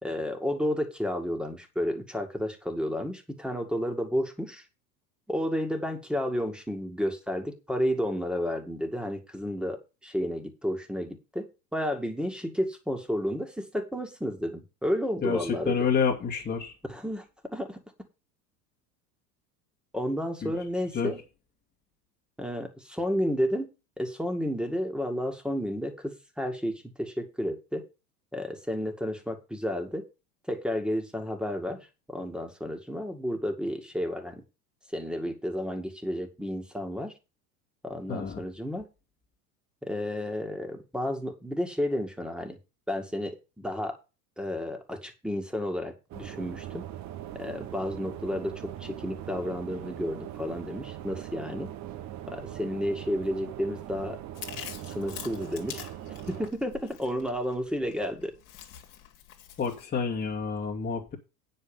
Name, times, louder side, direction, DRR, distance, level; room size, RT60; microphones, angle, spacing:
voice 1, 0.0-4.6 5.3-15.7 16.9-17.2 17.5-17.8 19.9-21.2 22.4-23.7 24.0-27.8 28.3-30.0 30.5-34.4 34.9-37.1 37.8-38.9 39.8-42.6 42.9-44.0 44.4-46.8 47.4-51.7 52.3-54.2 54.9-55.9 56.3-58.3, equal, ahead, 2.1 m, -31 dB
voice 2, 15.2-16.7 20.4-20.5 20.9-21.1 38.1-38.4 59.6-61.2, left 6 dB, 20° left, 2.0 m, -29 dB
sound 1, 46.1-56.5, right 12 dB, 35° right, 1.0 m, -41 dB
Chewing mastication, 54.3-59.8, left 10 dB, 40° left, 2.2 m, -45 dB
9.5 x 5.5 x 7.2 m
figure-of-eight pair, 80°, 49 cm